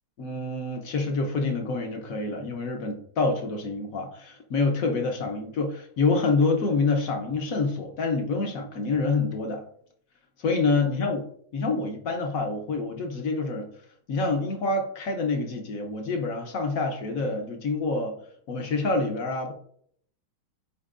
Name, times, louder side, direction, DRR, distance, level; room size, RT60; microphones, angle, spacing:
voice 1, 0.2-9.6 10.4-11.3 11.5-13.7 14.1-18.2 18.5-19.5, left 3 dB, 60° left, 4 dB, 0.9 m, -27 dB
9.8 x 4.5 x 2.5 m, 0.64 s
omnidirectional pair, 2.3 m